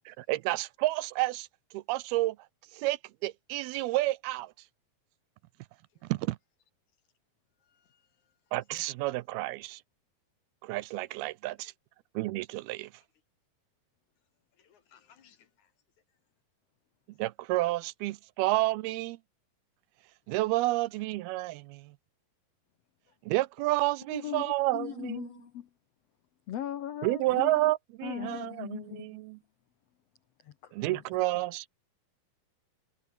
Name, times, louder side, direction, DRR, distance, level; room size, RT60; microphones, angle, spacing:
voice 1, 0.1-1.5 1.7-2.4 2.7-4.5 6.0-6.4 8.5-9.8 10.6-11.7 12.2-12.9 17.2-19.2 20.3-22.0 23.2-25.3 27.0-29.4 30.7-31.7, right 18 dB, 80° right, 2.5 m, -30 dB
voice 2, 7.6-8.3 14.6-15.7 23.1-23.2, left 8 dB, 55° left, 3.0 m, -64 dB
voice 3, 24.1-25.7 26.5-27.7 28.0-29.2 30.4-31.0, left 11 dB, 75° left, 1.5 m, -39 dB
omnidirectional pair, 4.5 m